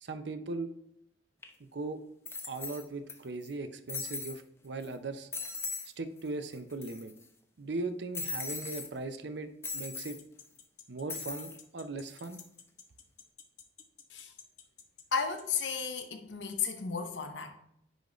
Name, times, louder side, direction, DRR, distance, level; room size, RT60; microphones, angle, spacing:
voice 1, 0.0-0.7 1.6-2.0 2.5-5.3 6.0-7.1 7.6-10.2 10.9-12.4, right 3 dB, 75° right, 9 dB, 0.6 m, -39 dB
sound 1, 1.4-1.5 2.3-3.1 3.4-3.5 3.9-4.4 4.8-5.0 5.3-5.9 6.2-6.3 6.5-7.2 8.1-8.9 9.6-10.2 11.1-11.6 12.1-12.4, left 4 dB, 15° left, 0.6 m, -39 dB
sound 2, 10.0-16.0, left 9 dB, 40° left, 0.8 m, -52 dB
voice 2, 15.1-17.5, left 6 dB, 85° left, 5 dB, 0.9 m, -34 dB
10.0 x 3.9 x 3.1 m, 0.73 s
head